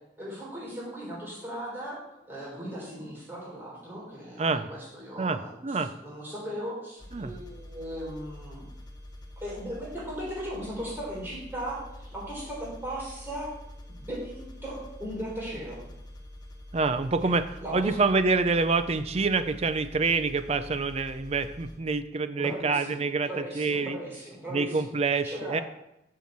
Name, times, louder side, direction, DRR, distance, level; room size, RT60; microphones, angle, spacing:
voice 1, 0.2-2.0 2.3-8.7 9.4-11.8 12.1-13.5 13.9-15.8 17.2-17.3 17.6-18.0 22.4-24.9 25.2-25.6, equal, 10° right, -6 dB, 3.9 m, -37 dB
voice 2, 4.4-4.7 5.2-5.9 7.1-7.3 16.7-23.3 23.6-24.0 24.5-25.6, right 4 dB, 35° right, 12 dB, 0.5 m, -27 dB
sound 1, 7.0-21.8, left 1 dB, 25° left, 0.9 m, -46 dB
7.4 x 5.7 x 7.3 m, 0.87 s
head